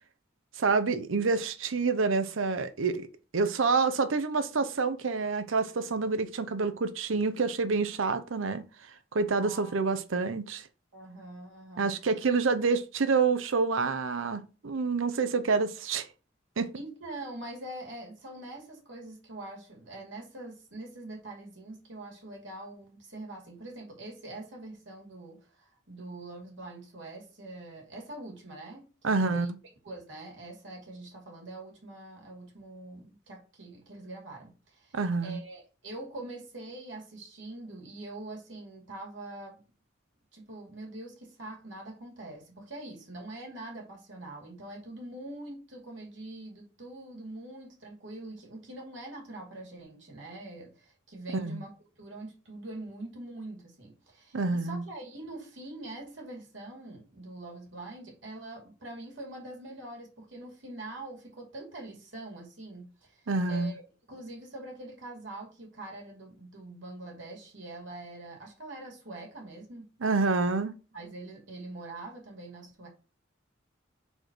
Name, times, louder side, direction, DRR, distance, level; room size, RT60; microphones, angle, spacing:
voice 1, 0.6-3.1 3.3-8.6 9.1-10.7 11.8-16.1 16.6-16.7 29.0-29.5 34.9-35.4 51.3-51.6 54.3-54.8 63.3-63.7 70.0-70.7, right 4 dB, 90° right, 0.7 m, -27 dB
voice 2, 9.4-9.9 10.9-11.9 16.7-29.5 29.8-35.0 35.2-39.6 40.3-63.2 63.5-63.8 64.1-69.9 70.9-72.9, right 2 dB, 70° right, 2.3 m, -44 dB
4.6 x 4.4 x 5.0 m
head